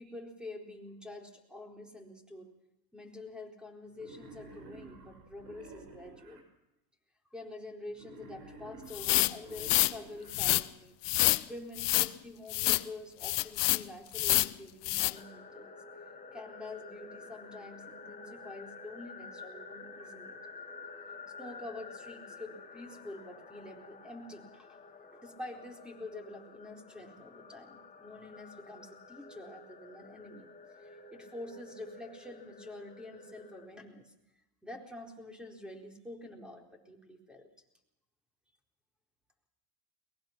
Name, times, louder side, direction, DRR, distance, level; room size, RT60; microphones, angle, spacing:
voice 1, 0.0-2.5 2.9-6.5 7.3-10.9 11.5-15.8 16.3-20.4 21.4-24.8 25.1-30.5 30.8-34.1 34.6-37.5, left 2 dB, ahead, 2 dB, 4.3 m, -47 dB
Wild animals, 3.9-6.4 7.9-10.4, right 2 dB, 85° right, 6.1 m, -51 dB
sound 1, 8.9-9.9 10.3-10.6 11.0-11.4 11.8-12.1 12.5-12.8 13.2-13.8 14.1-14.5 14.8-15.1, left 21 dB, 65° left, 0.9 m, -27 dB
sound 2, 15.1-33.7, left 3 dB, 15° left, 2.1 m, -50 dB
22.5 x 21.0 x 6.0 m, 0.88 s
supercardioid pair, 110°, 48 cm